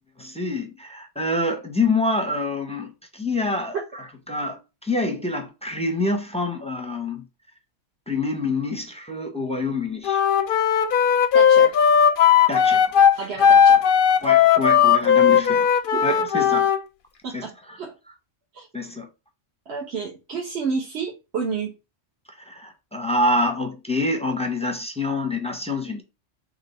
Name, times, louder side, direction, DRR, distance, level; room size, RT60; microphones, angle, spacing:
voice 1, 0.2-3.8 4.3-7.2 8.1-10.2 12.5-12.8 14.2-15.7 16.0-16.7 17.3-17.4 18.7-19.1 22.5-26.0, left 2 dB, 5° left, 0.5 m, -26 dB
Wind instrument woodwind instrument, 10.0-16.8, left 8 dB, 55° left, 0.6 m, -17 dB
voice 2, 11.3-11.7 13.2-13.8 15.9-16.0 17.2-17.9 18.5-18.7 19.7-21.7, right 5 dB, 65° right, 1.2 m, -30 dB
3.8 x 3.0 x 4.2 m
omnidirectional pair, 1.2 m